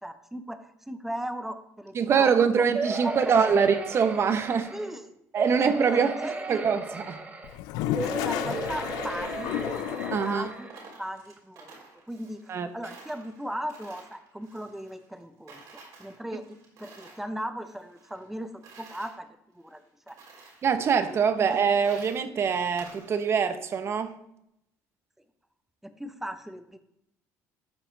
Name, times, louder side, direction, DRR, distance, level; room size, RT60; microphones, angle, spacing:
voice 1, 0.0-2.3 2.5-2.6 3.0-3.3 4.7-5.1 5.6-6.6 7.9-9.5 10.0-10.7 11.0-11.8 12.1-15.6 16.0-19.3 19.5-19.8 20.1-20.2 21.4-21.5 25.8-26.8, equal, 5° right, 8 dB, 0.9 m, -37 dB
voice 2, 1.9-4.7 5.3-6.1 6.5-7.2 10.1-10.5 12.5-12.7 20.6-24.1, right 6 dB, 45° right, 10 dB, 1.0 m, -24 dB
sound 1, 2.7-4.9 5.4-7.5 7.9-10.8 11.4-11.5 11.7-11.8, right 3 dB, 25° right, 1.3 m, -34 dB
Toilet flush, 7.4-10.5, left 13 dB, 85° left, 0.4 m, -32 dB
Coin (dropping), 9.7-12.6 12.8-15.2 15.5-17.3 17.6-19.1 19.7-19.8 20.1-20.7 21.1-23.5, right 4 dB, 75° right, 3.8 m, -51 dB
13.5 x 5.9 x 4.0 m, 0.80 s
cardioid pair, 100°, 6 cm